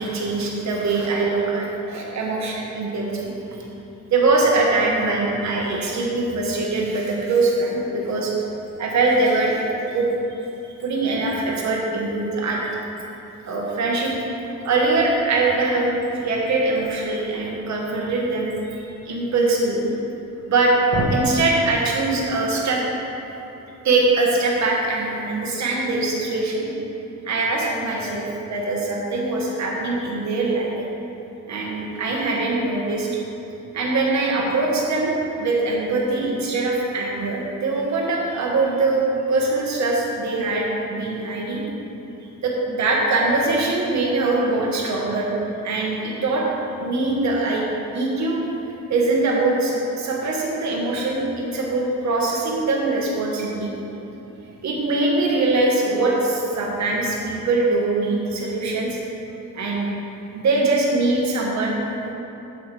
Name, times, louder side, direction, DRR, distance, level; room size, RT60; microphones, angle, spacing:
voice 1, 0.0-3.6 4.1-8.3 8.8-10.1 10.8-12.8 13.5-14.1 14.6-19.9 20.5-22.8 23.8-26.7 27.2-30.7 31.5-33.1 33.7-41.6 42.4-45.3 45.6-46.4 46.8-47.6 47.9-48.4 48.9-53.7 54.6-59.0 59.5-59.9 60.3-61.8 62.1-62.2, right 2 dB, 55° right, -2 dB, 1.5 m, -22 dB
7.8 x 6.8 x 3.5 m, 2.9 s
cardioid pair, 125°, 34 cm